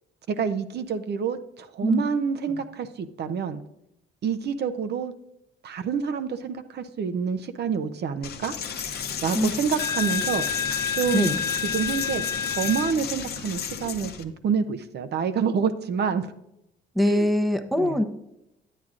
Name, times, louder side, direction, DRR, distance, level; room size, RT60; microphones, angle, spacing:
voice 1, 0.3-3.6 4.2-5.1 5.6-8.6 9.2-10.6 10.9-11.4 11.6-16.3 17.0-17.3 17.7-18.0, right 6 dB, 55° right, 9 dB, 0.6 m, -27 dB
Coin (dropping), 8.2-14.2, left 6 dB, 55° left, 0.8 m, -29 dB
voice 2, 17.0-18.0, left 1 dB, ahead, 8 dB, 0.7 m, -23 dB
9.3 x 9.1 x 2.5 m, 0.84 s
cardioid pair, 90°, 20 cm